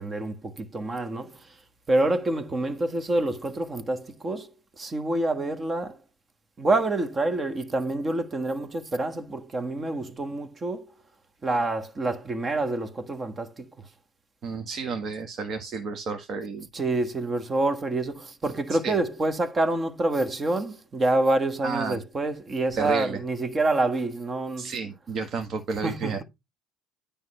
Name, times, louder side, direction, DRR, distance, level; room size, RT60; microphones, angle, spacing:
voice 1, 0.0-1.6 1.9-6.0 6.6-10.9 11.4-13.7 16.7-24.8 25.8-26.2, right 2 dB, 25° right, 1.4 m, -27 dB
voice 2, 14.4-16.7 18.7-19.0 21.6-22.0 22.7-23.2 24.6-26.2, right 4 dB, 45° right, 1.5 m, -31 dB
9.5 x 3.6 x 5.5 m
supercardioid pair, 90°, 0 cm